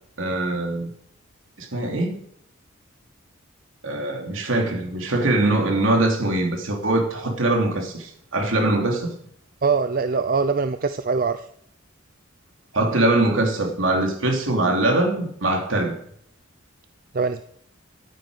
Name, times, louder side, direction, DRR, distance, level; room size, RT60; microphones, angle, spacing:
voice 1, 0.2-0.9 1.6-2.2 3.8-9.1 12.7-16.0, right 2 dB, 65° right, 3.0 m, -22 dB
voice 2, 9.6-11.5 17.1-17.4, right 5 dB, 45° right, 0.5 m, -22 dB
13.0 x 9.3 x 5.1 m
head